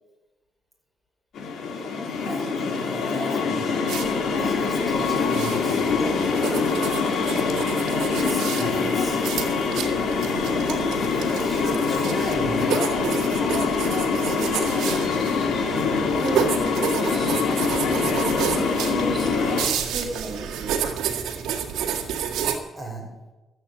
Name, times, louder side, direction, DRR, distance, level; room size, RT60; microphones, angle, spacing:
sound 1, 1.3-19.7, left 4 dB, 65° left, 2.3 m, -24 dB
voice 1, 2.2-3.7 4.4-6.3 7.8-9.2 10.6-12.7 22.8-23.1, equal, 5° left, -1 dB, 5.7 m, -36 dB
sound 2, 3.9-22.6, right 8 dB, 80° right, 1.8 m, -31 dB
voice 2, 16.2-17.4 18.2-19.3 19.6-20.8, right 3 dB, 40° right, 1 dB, 2.3 m, -34 dB
13.5 x 8.6 x 8.2 m, 1.1 s
cardioid pair, 90°, 0 cm